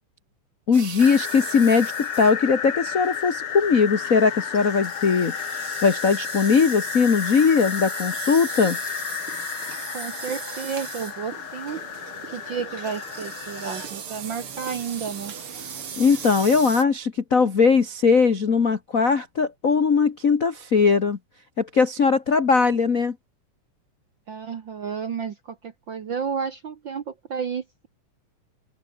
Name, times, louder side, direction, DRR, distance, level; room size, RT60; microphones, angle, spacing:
voice 1, 0.7-5.3 5.8-8.8 16.0-21.2 21.6-23.1, left 5 dB, 90° left, 0.7 m, -20 dB
sound 1, 0.7-16.8, right 7 dB, 45° right, 2.9 m, -39 dB
sound 2, 1.0-13.9, left 8 dB, 60° left, 1.2 m, -32 dB
voice 2, 9.9-11.8 12.3-15.3 24.3-27.9, right 6 dB, 60° right, 1.2 m, -32 dB
open air
omnidirectional pair, 3.8 m